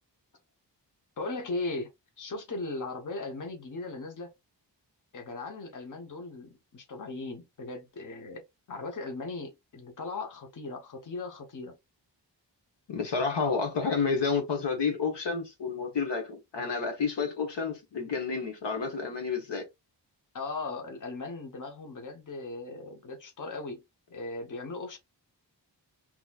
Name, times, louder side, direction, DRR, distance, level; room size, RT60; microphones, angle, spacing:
voice 1, 1.2-1.9 2.2-4.3 5.1-8.4 8.7-11.8 20.3-23.8 24.1-25.0, left 3 dB, 45° left, 1.1 m, -38 dB
voice 2, 12.9-19.7, left 5 dB, 70° left, 1.2 m, -30 dB
4.0 x 3.0 x 2.4 m
wide cardioid pair, 90°, 43 cm